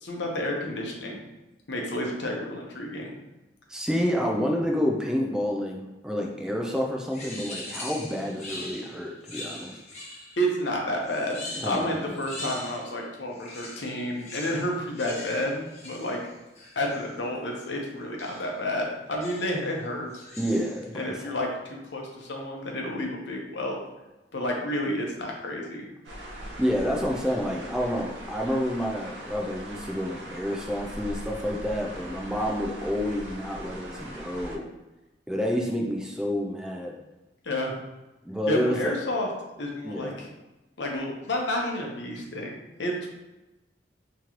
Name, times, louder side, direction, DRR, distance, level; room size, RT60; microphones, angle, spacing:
voice 1, 0.0-1.2 1.7-3.1 10.4-16.2 16.8-20.2 20.9-23.8 24.3-25.9 37.4-37.7 38.5-39.3 39.6-40.3 40.8-43.1, left 1 dB, 80° left, 0 dB, 0.8 m, -30 dB
voice 2, 3.7-9.8 11.5-12.1 20.4-21.1 26.6-34.7 35.3-36.9 38.3-38.9 39.8-40.1, equal, 5° right, 0 dB, 0.4 m, -29 dB
sound 1, 7.1-10.5 11.0-13.0 13.3-17.1 18.2-18.5 19.2-19.7 20.1-20.9, left 1 dB, 40° left, 0.8 m, -42 dB
sound 2, 26.0-34.6, right 1 dB, 70° right, 0.8 m, -40 dB
3.7 x 3.0 x 3.0 m, 1.0 s
head